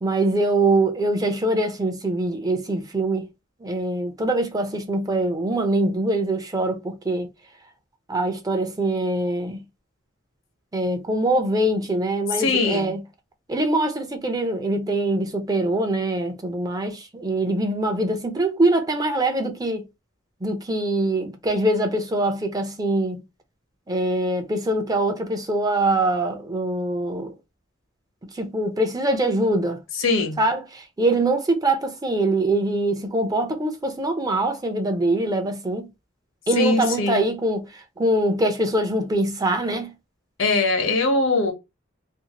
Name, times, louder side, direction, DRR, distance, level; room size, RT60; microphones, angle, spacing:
voice 1, 0.0-3.3 3.6-7.3 8.1-9.6 10.7-13.0 13.5-19.8 20.4-23.2 23.9-27.3 28.3-29.8 30.4-35.9 36.5-37.7 38.0-39.9, right 1 dB, 20° right, 0.5 m, -23 dB
voice 2, 12.4-13.0 29.9-30.4 36.6-37.3 40.4-41.5, left 3 dB, 80° left, 0.9 m, -21 dB
2.6 x 2.4 x 2.8 m
head